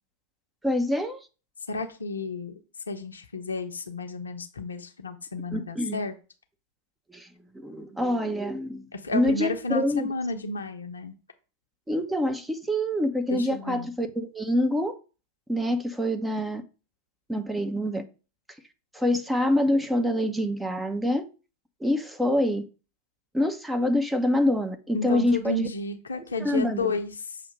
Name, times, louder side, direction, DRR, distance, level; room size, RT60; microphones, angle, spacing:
voice 1, 0.6-1.3 5.5-6.0 7.1-7.3 7.5-10.1 11.9-14.9 15.5-16.6 17.3-18.0 18.9-21.2 21.8-22.6 23.3-25.7 26.4-27.0, left 1 dB, 5° right, 0.8 m, -26 dB
voice 2, 1.7-2.5 2.9-6.1 8.9-11.1 13.3-13.9 24.9-27.4, left 3 dB, 75° left, 0.8 m, -32 dB
6.7 x 2.9 x 5.3 m
figure-of-eight pair, 90°, 0 cm